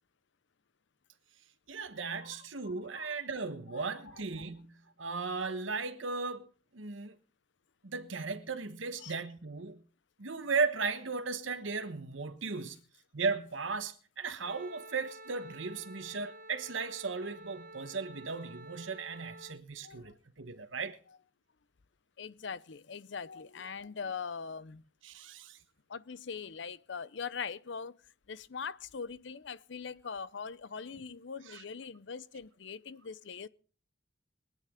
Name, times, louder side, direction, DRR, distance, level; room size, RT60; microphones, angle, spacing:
voice 1, 1.7-6.5 6.7-7.1 7.8-9.8 10.2-12.8 13.1-21.0 25.0-25.6 31.5-31.6, right 4 dB, 85° right, 1.2 m, -36 dB
voice 2, 2.7-3.2 3.7-4.2 9.0-9.1 19.8-20.1 20.6-20.7 22.2-24.8 25.9-28.0 28.3-33.5, left 6 dB, 65° left, 0.6 m, -42 dB
Wind instrument woodwind instrument, 14.4-19.6, right 2 dB, 45° right, 1.0 m, -50 dB
23.0 x 9.3 x 3.7 m
head